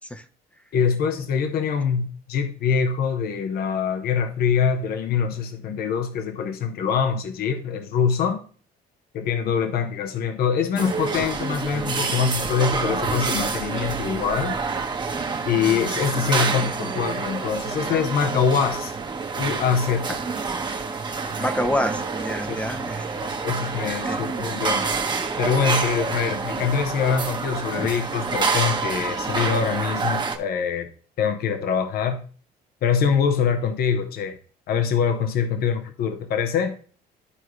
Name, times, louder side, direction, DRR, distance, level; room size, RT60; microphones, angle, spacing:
voice 1, 0.7-8.4 9.1-14.6 15.5-18.9 19.4-20.2 22.5-22.7 23.4-24.8 25.4-30.9 31.2-32.2 32.8-34.4 34.7-36.8, left 7 dB, 65° left, 7 dB, 1.0 m, -24 dB
sound 1, 10.8-30.4, right 4 dB, 25° right, 1.1 m, -27 dB
voice 2, 21.4-23.0 24.1-24.2 27.8-27.9, equal, 5° left, 9 dB, 0.7 m, -27 dB
12.5 x 4.6 x 3.1 m, 0.42 s
cardioid pair, 110°, 17 cm